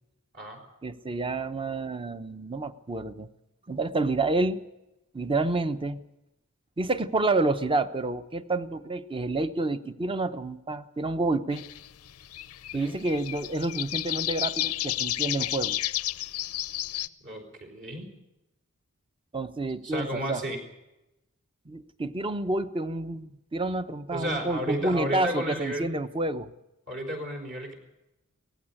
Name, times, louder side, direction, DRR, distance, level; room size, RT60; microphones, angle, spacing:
voice 1, 0.8-3.3 3.7-4.6 5.1-6.0 6.8-11.6 12.7-15.8 19.3-20.4 21.7-26.5, right 2 dB, 25° right, 11 dB, 0.8 m, -29 dB
sound 1, 11.5-17.1, left 14 dB, 75° left, 0.6 m, -31 dB
voice 2, 17.2-18.1 19.8-20.7 24.1-25.9 26.9-27.7, equal, 55° right, 2 dB, 4.5 m, -33 dB
18.0 x 15.5 x 9.9 m, 0.98 s
head